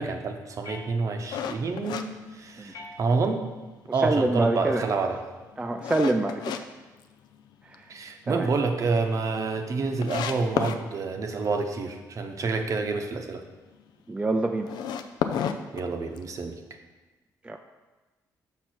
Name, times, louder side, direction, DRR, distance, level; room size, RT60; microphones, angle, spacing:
voice 1, 0.0-3.4 3.9-5.2 7.9-13.4 15.7-16.6, right 4 dB, 50° right, 5 dB, 0.8 m, -28 dB
sound 1, 0.6-1.5 2.7-3.5 4.7-5.5, left 2 dB, 55° left, 0.9 m, -47 dB
sound 2, 1.3-3.0 3.4-3.5 4.1-6.6 7.0-7.8 8.1-8.2 8.6-8.7 8.8-8.9 9.6-9.7 10.0-10.8 14.6-16.4, left 8 dB, 80° left, 0.4 m, -31 dB
voice 2, 4.0-4.9 5.6-6.6 7.7-7.8 8.3-8.5 14.1-14.8 17.4-17.6, right 2 dB, 15° right, 4 dB, 0.4 m, -26 dB
6.3 x 5.6 x 4.3 m, 1.2 s
cardioid pair, 105°, 7 cm